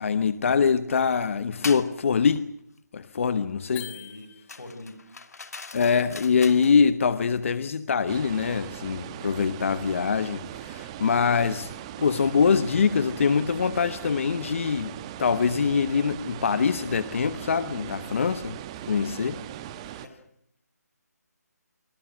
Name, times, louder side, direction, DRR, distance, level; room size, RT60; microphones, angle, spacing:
voice 1, 0.0-2.5 2.9-3.8 5.7-11.7 12.0-14.9 15.2-18.6 18.9-19.4, left 6 dB, 50° left, 1.2 m, -24 dB
sound 1, 1.6-1.9 4.5-6.8, left 4 dB, 65° left, 2.6 m, -39 dB
voice 2, 3.6-5.0 20.0-20.1, left 1 dB, 85° left, 7.5 m, -44 dB
sound 2, 3.7-4.9, left 14 dB, 15° left, 1.5 m, -43 dB
sound 3, 8.1-20.1, right 12 dB, 20° right, 1.2 m, -39 dB
29.0 x 24.5 x 6.2 m
figure-of-eight pair, 160°, 9 cm